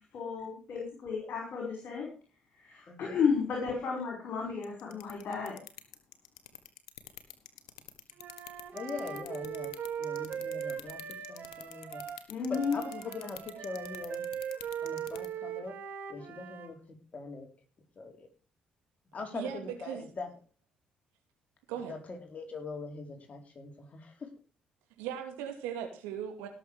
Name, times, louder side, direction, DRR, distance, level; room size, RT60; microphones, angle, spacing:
voice 1, 0.1-2.1 2.6-5.6 12.3-12.8, left 5 dB, 65° left, 0 dB, 5.1 m, -33 dB
voice 2, 2.9-3.2 8.7-9.7 10.0-11.0 11.3-12.0 12.5-14.2 14.8-15.7 16.1-16.8 17.1-17.5 18.0-18.3 19.1-20.3 21.9-24.3, left 3 dB, 40° left, 4 dB, 4.5 m, -42 dB
sound 1, 4.6-15.3, left 15 dB, 90° left, 1.3 m, -46 dB
Wind instrument woodwind instrument, 8.2-16.7, right 8 dB, 60° right, 2.2 m, -39 dB
voice 3, 19.3-20.1 21.7-22.0 25.0-26.5, right 9 dB, 85° right, 5 dB, 2.6 m, -38 dB
17.5 x 7.2 x 4.9 m, 0.37 s
hypercardioid pair, 55°, 3 cm